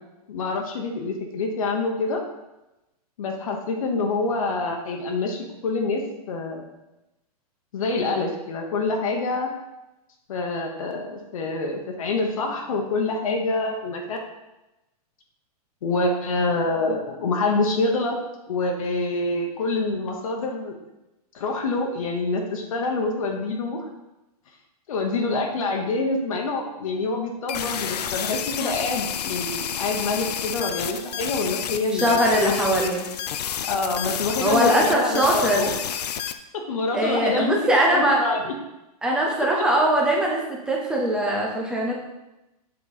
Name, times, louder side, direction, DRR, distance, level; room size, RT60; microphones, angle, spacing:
voice 1, 0.3-2.2 3.2-6.0 6.3-6.7 7.7-9.5 10.3-14.2 15.8-18.2 18.5-20.7 21.3-23.8 24.9-32.2 33.7-35.7 36.7-37.5 37.9-38.5, left 3 dB, 60° left, 2 dB, 1.1 m, -26 dB
sound 1, 27.5-36.3, left 9 dB, 85° left, 0.6 m, -30 dB
voice 2, 31.9-33.0 34.4-35.7 36.9-38.2 39.0-41.9, right 1 dB, 5° right, -2 dB, 0.5 m, -21 dB
7.8 x 4.3 x 4.1 m, 0.97 s
supercardioid pair, 175°, 20 cm